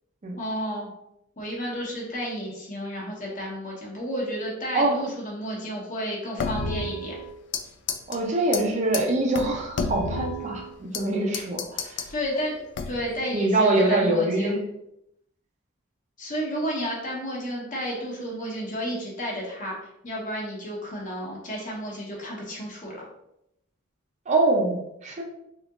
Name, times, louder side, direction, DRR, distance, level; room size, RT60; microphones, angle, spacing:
voice 1, 0.4-0.9 1.4-7.1 12.1-12.5 12.9-14.6 16.2-23.0, equal, 40° left, -3 dB, 1.0 m, -32 dB
sound 1, 6.4-7.6 7.9-8.2 8.5-8.6 8.9-9.0 9.3-11.0 11.3-12.1 12.7-13.2, left 3 dB, 60° left, 0.3 m, -30 dB
voice 2, 8.1-12.1 13.3-14.7 24.3-25.2, right 2 dB, 35° right, -1 dB, 0.5 m, -24 dB
3.6 x 2.8 x 2.4 m, 0.80 s
head